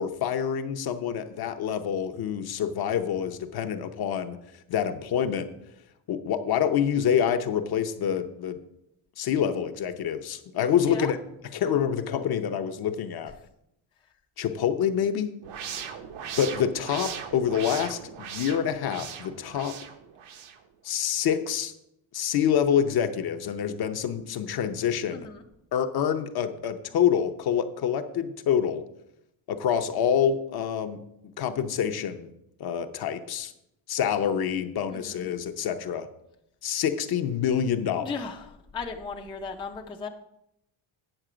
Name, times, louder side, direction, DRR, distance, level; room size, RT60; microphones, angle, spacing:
voice 1, 0.0-5.5 6.1-8.6 9.2-11.2 11.5-13.3 14.4-15.3 16.4-19.8 20.8-21.7 22.1-25.3 25.7-28.8 29.5-31.0 31.4-32.3 32.6-33.5 33.9-36.1 36.6-38.1, left 8 dB, 50° left, 8 dB, 0.7 m, -27 dB
sound 1, 15.4-20.6, right 8 dB, 75° right, 1.0 m, -39 dB
voice 2, 25.1-25.4 34.9-35.3 38.0-40.1, left 5 dB, 10° left, 2 dB, 0.4 m, -36 dB
9.0 x 6.5 x 5.0 m, 0.80 s
cardioid pair, 160°, 48 cm